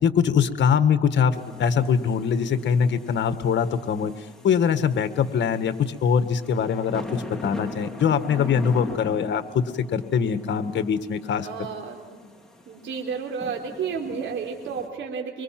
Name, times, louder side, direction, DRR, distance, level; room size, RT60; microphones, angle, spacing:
voice 1, 0.0-4.1 4.4-11.5, left 7 dB, 65° left, 10 dB, 1.7 m, -23 dB
sound 1, 1.3-14.9, left 1 dB, 5° left, 4.5 m, -41 dB
voice 2, 11.3-12.2 12.7-15.4, right 6 dB, 75° right, 1 dB, 3.8 m, -32 dB
25.0 x 24.0 x 6.0 m, 1.4 s
cardioid pair, 90°, 20 cm